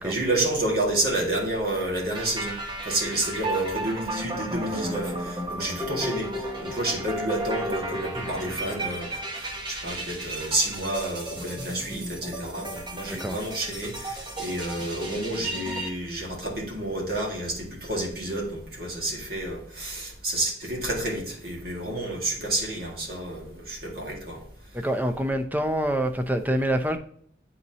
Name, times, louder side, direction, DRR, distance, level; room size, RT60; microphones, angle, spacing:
voice 1, 0.0-2.6 2.9-6.3 6.6-9.1 9.4-24.4, right 1 dB, 55° right, -1 dB, 1.9 m, -29 dB
sound 1, 2.1-15.9, right 1 dB, 25° right, 0.9 m, -34 dB
voice 2, 24.7-27.0, right 1 dB, 10° right, 6 dB, 0.5 m, -26 dB
8.5 x 4.1 x 2.9 m, 0.63 s
head